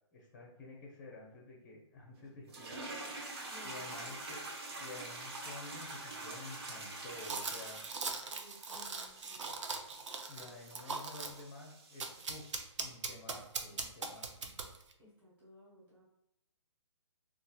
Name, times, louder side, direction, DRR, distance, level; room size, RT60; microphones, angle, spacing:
voice 1, 0.1-2.8 3.6-4.4 4.8-7.8 10.3-12.5 12.8-14.5, left 2 dB, 25° left, -1 dB, 0.6 m, -50 dB
sound 1, 2.5-12.7, right 2 dB, 55° right, 1.1 m, -46 dB
voice 2, 3.5-4.1 8.3-9.6 15.0-16.0, equal, 15° right, -9 dB, 1.1 m, -58 dB
sound 2, 7.2-11.4 12.0-14.9, right 4 dB, 80° right, 0.5 m, -40 dB
4.1 x 2.4 x 2.2 m, 0.87 s
hypercardioid pair, 160°, 15 cm